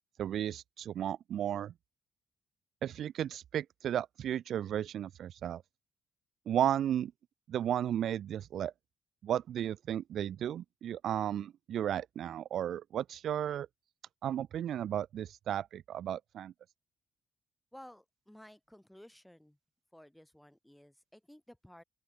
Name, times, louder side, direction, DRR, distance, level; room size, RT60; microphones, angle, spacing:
voice 1, 0.2-1.7 2.8-5.6 6.5-7.1 7.5-8.7 9.2-13.7 14.2-16.5, right 10 dB, 70° right, 0.5 m, -34 dB
voice 2, 17.7-19.6 19.9-21.8, left 1 dB, 5° left, 6.3 m, -55 dB
open air
cardioid pair, 90°, 0 cm